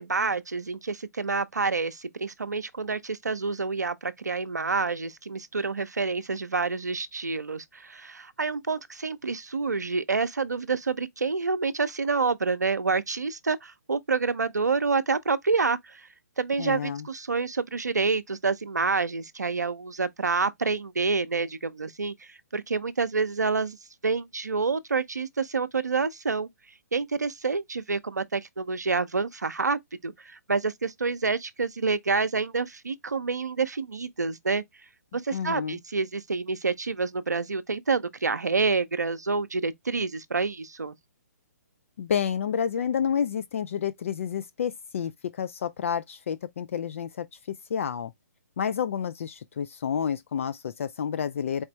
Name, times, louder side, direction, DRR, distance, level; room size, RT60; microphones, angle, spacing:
voice 1, 0.0-16.1 16.4-23.8 24.0-26.5 26.9-34.6 35.1-40.9, right 4 dB, 80° right, 0.6 m, -28 dB
voice 2, 16.6-17.1 35.3-35.8 42.0-48.1 48.6-51.6, left 8 dB, 50° left, 0.4 m, -30 dB
4.3 x 3.2 x 3.0 m
figure-of-eight pair, 130°, 9 cm